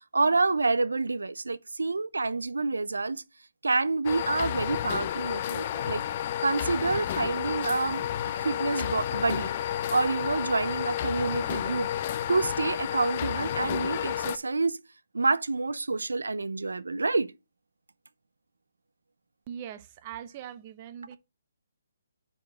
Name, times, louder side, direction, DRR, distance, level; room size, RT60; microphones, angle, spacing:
voice 1, 0.1-3.2 3.6-6.0 6.4-8.0 8.3-9.5 9.9-11.9 12.3-14.8 15.1-17.3, right 3 dB, 80° right, 0.6 m, -28 dB
sound 1, 4.0-14.4, left 11 dB, 40° left, 0.5 m, -31 dB
voice 2, 19.5-21.2, right 9 dB, 30° right, 0.6 m, -41 dB
4.7 x 4.3 x 5.6 m
figure-of-eight pair, 140°, 0 cm